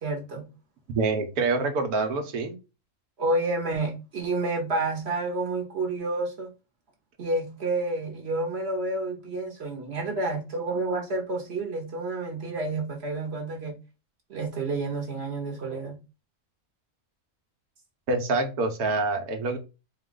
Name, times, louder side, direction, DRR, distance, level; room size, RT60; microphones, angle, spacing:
voice 1, 0.0-0.5 3.2-6.5 7.2-13.8 14.3-16.0, right 2 dB, 50° right, 1.2 m, -29 dB
voice 2, 0.9-2.5 18.1-19.6, right 3 dB, 85° right, 1.4 m, -26 dB
4.2 x 2.4 x 3.7 m
omnidirectional pair, 1.5 m